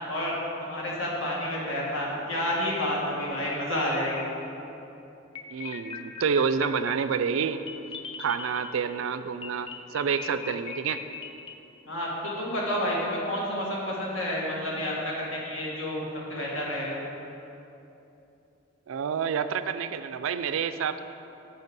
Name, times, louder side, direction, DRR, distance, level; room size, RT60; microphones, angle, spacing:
voice 1, 0.0-4.3 11.9-12.1 12.4-17.0, left 1 dB, 70° left, -4 dB, 1.9 m, -30 dB
sound 1, 3.2-4.7 5.3-8.9 9.4-11.6, left 5 dB, 25° left, 0.5 m, -40 dB
voice 2, 5.5-7.6 8.2-11.0 18.9-21.0, right 6 dB, 80° right, 11 dB, 0.4 m, -28 dB
8.1 x 5.9 x 5.3 m, 2.9 s
head